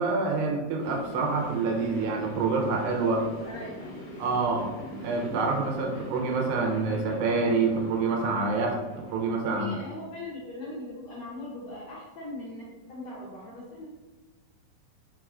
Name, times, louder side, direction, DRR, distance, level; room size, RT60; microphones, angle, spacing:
voice 1, 0.0-3.2 4.2-4.7 5.0-9.8, right 4 dB, 85° right, 1 dB, 2.4 m, -27 dB
sound 1, 0.8-9.4, equal, 45° left, 1.6 m, -41 dB
voice 2, 3.4-3.9 9.4-12.6 12.9-13.8, left 2 dB, 75° left, -8 dB, 1.5 m, -40 dB
4.7 x 4.4 x 2.4 m, 1.2 s
omnidirectional pair, 4.1 m